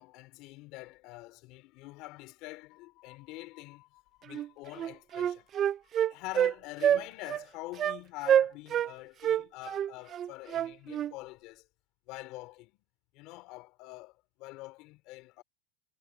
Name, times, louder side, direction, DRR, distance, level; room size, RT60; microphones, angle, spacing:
voice 1, 0.0-11.7 12.1-12.8 13.1-15.4, left 21 dB, 50° left, 3.3 m, -46 dB
Wind instrument woodwind instrument, 4.3-4.5 4.8-6.5 6.8-7.0 7.3-7.4 7.8-8.0 8.3-8.9 9.2-11.1, right 10 dB, 30° right, 0.4 m, -27 dB
supercardioid pair, 140°, 0 cm